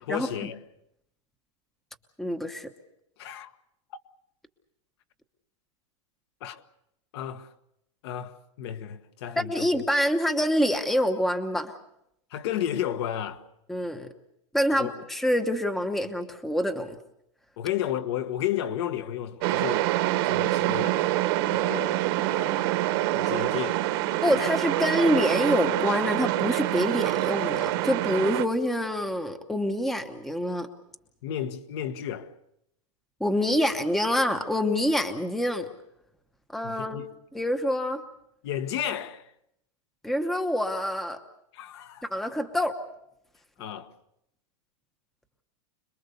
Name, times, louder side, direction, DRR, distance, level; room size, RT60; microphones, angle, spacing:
voice 1, 0.0-0.6 3.2-3.5 3.9-4.0 6.4-6.6 7.1-7.5 8.0-9.8 12.3-13.5 14.7-15.0 17.6-19.9 20.2-21.0 21.5-22.0 22.3-22.8 23.1-23.8 24.3-24.5 31.2-32.3 36.6-37.1 38.4-39.3 41.5-42.1 43.6-43.9, left 10 dB, 55° left, 1.5 m, -33 dB
voice 2, 2.2-2.7 9.4-11.7 13.7-14.1 14.5-17.0 24.2-30.7 33.2-35.7 36.5-37.0 37.3-38.0 40.0-41.2 42.0-42.8, equal, ahead, 1.0 m, -26 dB
sound 1, 19.4-28.4, right 15 dB, 50° right, 1.3 m, -26 dB
26.5 x 21.5 x 6.8 m
supercardioid pair, 165°, 16 cm